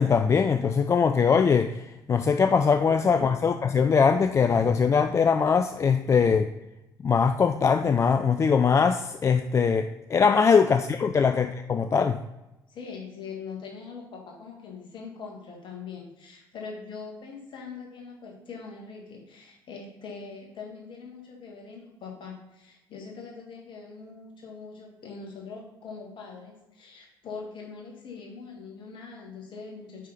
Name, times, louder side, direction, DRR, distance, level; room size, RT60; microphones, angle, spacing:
voice 1, 0.0-6.5 7.0-12.2, left 6 dB, 25° left, 8 dB, 0.3 m, -22 dB
voice 2, 2.8-3.3 11.1-11.2 12.7-30.1, left 5 dB, 45° left, 0 dB, 1.7 m, -42 dB
6.2 x 5.5 x 4.0 m, 0.96 s
figure-of-eight pair, 50°, 11 cm